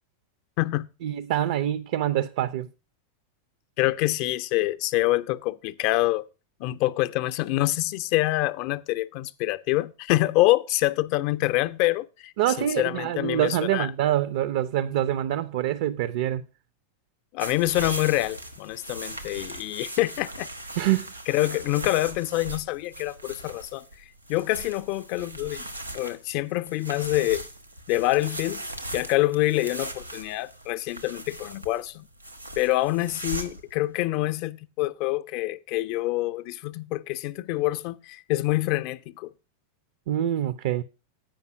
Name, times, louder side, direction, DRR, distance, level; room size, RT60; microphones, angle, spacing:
voice 1, 1.0-2.7 12.4-16.4 20.8-21.1 40.1-40.8, right 12 dB, 50° right, 0.4 m, -25 dB
voice 2, 3.8-6.2 6.6-12.3 12.6-13.9 17.3-20.5 21.3-23.8 24.3-25.7 25.9-27.4 27.9-28.6 28.9-32.1 32.6-39.3, left 18 dB, 45° left, 0.5 m, -26 dB
sound 1, 17.4-33.7, right 1 dB, 90° right, 1.0 m, -39 dB
8.9 x 5.4 x 5.9 m
figure-of-eight pair, 90°, 0 cm